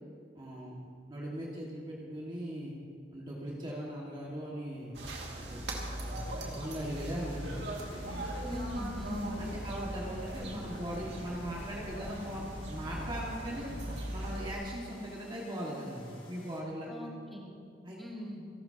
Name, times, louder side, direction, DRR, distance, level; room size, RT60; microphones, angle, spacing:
voice 1, 0.3-0.8 1.1-2.7 3.1-4.9 5.3-5.6 5.9-7.6 9.4-13.7 14.1-17.1 17.8-18.0, equal, 30° right, -5 dB, 1.9 m, -39 dB
Car passing by / Truck / Engine, 4.8-14.3, left 1 dB, 50° left, 2.0 m, -56 dB
sound 1, 4.9-14.5, right 1 dB, 85° right, 2.1 m, -40 dB
sound 2, 5.8-16.6, right 1 dB, 30° left, 2.1 m, -55 dB
voice 2, 8.4-9.4 16.9-17.5 18.0-18.4, left 1 dB, ahead, -5 dB, 2.7 m, -40 dB
28.5 x 12.0 x 2.9 m, 2.3 s
head